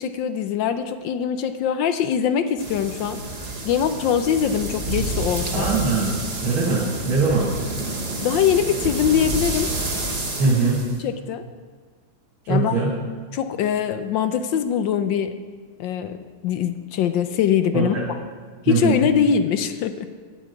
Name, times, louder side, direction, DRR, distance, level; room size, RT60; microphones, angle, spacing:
voice 1, 0.0-3.2 3.6-5.7 8.2-9.7 11.0-11.4 12.5-12.7 13.3-15.3 15.8-16.2 16.4-18.1 18.6-20.1, left 8 dB, 70° left, 9 dB, 1.2 m, -22 dB
sound 1, 2.6-11.0, right 2 dB, 30° right, 0.8 m, -29 dB
voice 2, 5.5-7.5 10.4-10.8 12.4-12.9 17.7-18.0 18.7-19.0, right 4 dB, 85° right, -6 dB, 2.8 m, -21 dB
8.7 x 8.3 x 8.2 m, 1.5 s
omnidirectional pair, 2.3 m